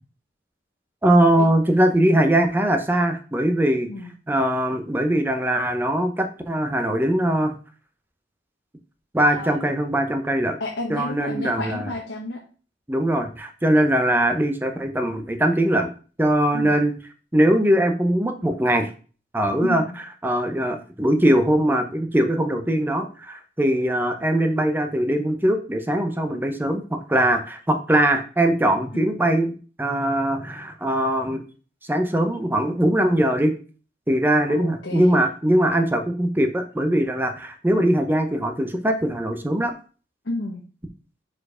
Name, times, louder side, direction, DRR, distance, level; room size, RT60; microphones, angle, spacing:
voice 1, 1.0-3.9 4.3-7.5 9.1-10.6 10.9-11.9 12.9-15.9 16.2-16.9 17.3-18.9 19.3-19.8 20.2-29.5 29.8-31.4 31.9-33.5 34.1-39.7, right 1 dB, 10° right, 6 dB, 0.6 m, -21 dB
voice 2, 10.6-12.4 16.5-16.8 19.6-20.0 28.9-29.2 34.5-35.2 40.2-40.6, left 2 dB, 85° left, 0 dB, 1.0 m, -31 dB
4.8 x 4.4 x 4.9 m, 0.38 s
head